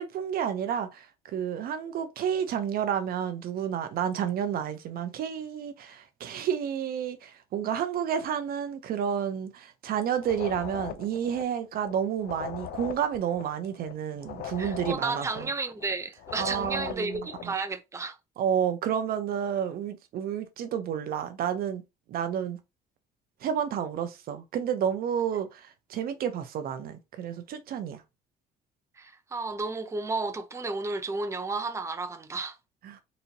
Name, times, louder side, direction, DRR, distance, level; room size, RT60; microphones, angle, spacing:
voice 1, 0.0-15.5 16.4-17.5 18.4-21.8 22.1-22.6 23.4-28.0 32.8-33.0, right 8 dB, 60° right, 0.7 m, -30 dB
sound 1, 10.2-17.5, left 10 dB, 70° left, 0.5 m, -40 dB
voice 2, 14.6-18.2 29.0-32.6, right 3 dB, 15° right, 0.7 m, -32 dB
4.0 x 2.8 x 2.8 m
cardioid pair, 110°, 17 cm